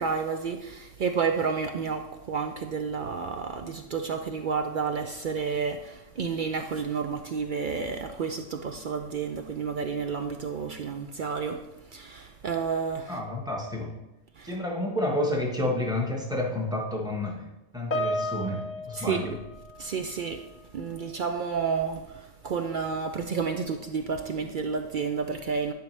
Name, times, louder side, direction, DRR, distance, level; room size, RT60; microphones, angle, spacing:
voice 1, 0.0-13.2 14.4-14.6 18.9-19.4 19.8-20.4 20.7-25.7, right 5 dB, 65° right, 0.5 m, -30 dB
voice 2, 13.1-13.9 14.4-17.4 17.7-19.3, left 1 dB, 5° right, 1.1 m, -30 dB
Piano, 17.9-20.6 20.8-21.1 21.9-22.0, equal, 45° left, 0.7 m, -34 dB
10.5 x 5.2 x 3.3 m
omnidirectional pair, 1.4 m